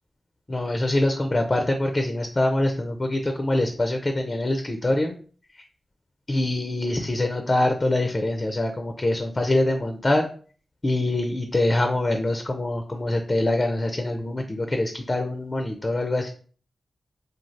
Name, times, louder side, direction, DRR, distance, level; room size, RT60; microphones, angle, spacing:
voice 1, 0.5-5.1 6.3-10.3 10.8-16.3, left 1 dB, 35° left, 4 dB, 0.4 m, -24 dB
3.2 x 2.3 x 2.6 m, 0.43 s
cardioid pair, 45°, 0 cm